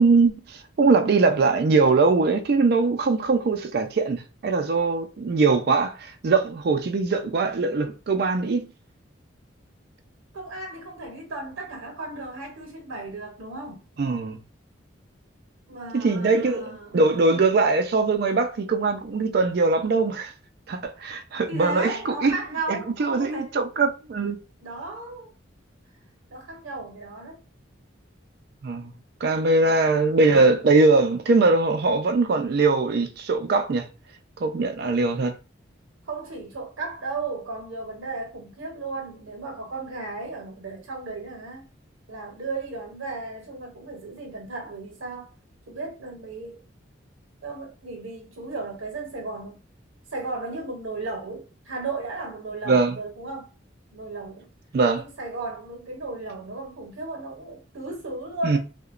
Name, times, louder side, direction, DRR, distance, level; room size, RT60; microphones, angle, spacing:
voice 1, 0.0-8.7 14.0-14.4 15.9-20.3 20.7-22.4 22.7-24.4 28.6-28.9 29.2-33.9 34.4-35.3 52.7-52.9 54.7-55.0 58.4-58.6, right 3 dB, 50° right, 0.3 m, -21 dB
voice 2, 10.3-13.9 15.7-17.0 17.3-17.6 21.5-23.6 24.6-25.3 26.3-27.4 29.6-29.8 36.0-41.6 42.1-45.3 45.7-46.6 47.4-49.6 50.1-53.5 53.9-54.5 54.9-58.6, right 3 dB, 90° right, 0.7 m, -35 dB
2.8 x 2.1 x 2.4 m
head